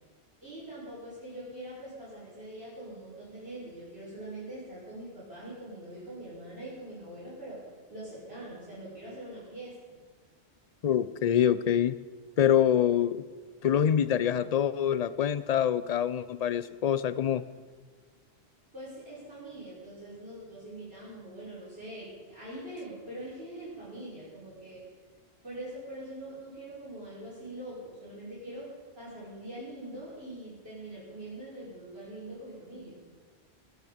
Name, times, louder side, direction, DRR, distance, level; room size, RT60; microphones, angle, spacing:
voice 1, 0.4-7.6 7.9-10.0 18.7-24.9 25.4-28.7 29.0-33.0, right 1 dB, 70° right, -9 dB, 6.1 m, -43 dB
voice 2, 10.8-12.0 12.4-13.2 13.6-17.4, left 9 dB, 45° left, 16 dB, 0.6 m, -25 dB
19.0 x 11.5 x 5.1 m, 1.4 s
omnidirectional pair, 1.1 m